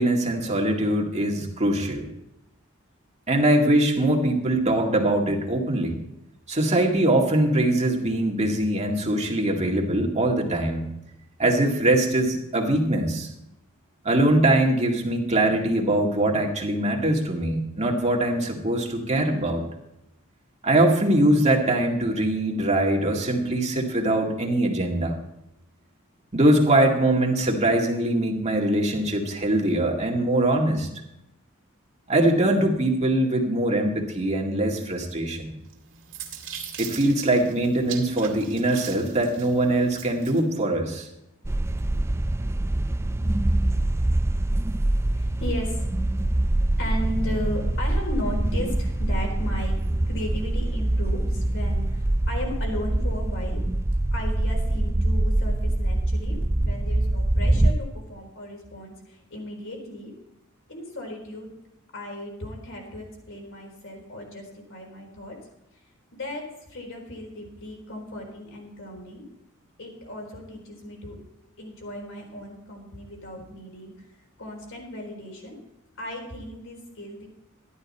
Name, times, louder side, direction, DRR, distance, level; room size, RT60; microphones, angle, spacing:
voice 1, 0.0-2.1 3.3-6.0 6.5-10.9 11.4-13.3 14.0-19.6 20.6-25.2 26.3-30.9 32.1-35.5 36.8-41.1, right 1 dB, 30° right, 0 dB, 2.0 m, -22 dB
sound 1, 35.7-40.4, right 8 dB, 60° right, 2.3 m, -40 dB
sound 2, 41.4-57.8, right 1 dB, 10° right, 0.4 m, -24 dB
voice 2, 45.1-45.9 46.8-49.8 50.1-53.6 54.1-60.1 60.7-61.5 61.9-65.4 66.1-69.2 69.8-71.2 71.6-74.1 74.4-75.6 76.0-77.3, left 1 dB, 65° left, 1 dB, 4.1 m, -36 dB
13.0 x 11.5 x 4.3 m, 0.86 s
head